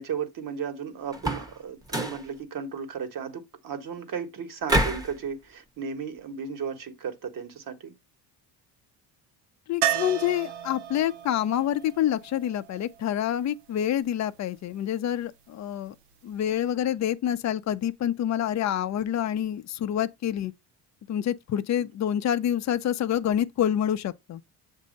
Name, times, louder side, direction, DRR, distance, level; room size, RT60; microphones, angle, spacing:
voice 1, 0.0-7.9, right 6 dB, 50° right, 1.5 m, -35 dB
sound 1, 1.1-1.6 1.9-2.3 4.7-5.1, right 1 dB, 10° right, 1.0 m, -26 dB
voice 2, 9.7-15.9 16.2-20.5 21.1-24.4, left 10 dB, 40° left, 0.6 m, -27 dB
sound 2, 9.8-13.7 16.4-16.5 16.7-16.8, right 11 dB, 70° right, 0.7 m, -33 dB
7.4 x 2.7 x 5.1 m
cardioid pair, 115°, 43 cm